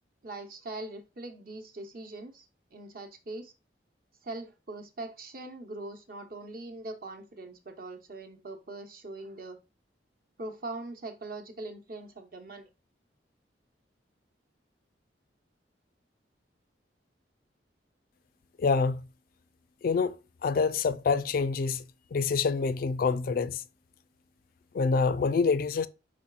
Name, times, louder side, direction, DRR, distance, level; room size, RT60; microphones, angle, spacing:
voice 1, 0.2-3.5 4.2-9.6 10.4-12.7, right 2 dB, 55° right, 0.9 m, -41 dB
voice 2, 18.6-19.0 19.8-20.1 20.4-21.8 22.1-23.6 24.7-25.9, left 4 dB, 55° left, 0.3 m, -26 dB
4.7 x 4.2 x 2.3 m
head